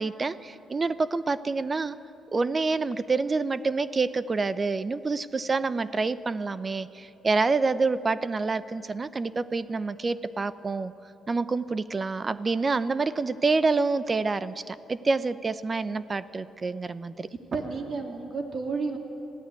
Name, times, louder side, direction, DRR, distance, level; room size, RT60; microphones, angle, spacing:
voice 1, 0.0-2.0 2.3-10.9 11.3-17.3, right 3 dB, 30° right, 15 dB, 0.6 m, -27 dB
voice 2, 17.3-19.0, right 4 dB, 50° right, 3 dB, 2.7 m, -32 dB
20.0 x 15.0 x 9.3 m, 2.8 s
cardioid pair, 90°, 0 cm